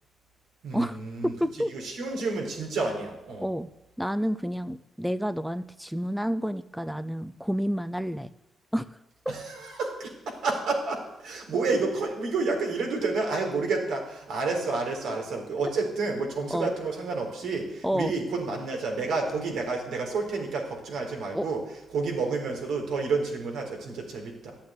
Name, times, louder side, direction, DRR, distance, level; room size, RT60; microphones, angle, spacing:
voice 1, 0.6-1.3 1.7-3.5 9.3-21.6 21.9-24.6, right 3 dB, 90° right, 1 dB, 4.0 m, -30 dB
voice 2, 1.2-1.7 3.4-3.7 4.0-8.3 8.7-9.0 9.3-9.4 16.5-16.7 17.8-18.1 21.3-21.5, equal, ahead, 13 dB, 0.5 m, -29 dB
13.0 x 8.7 x 9.5 m, 0.91 s
cardioid pair, 120°, 0 cm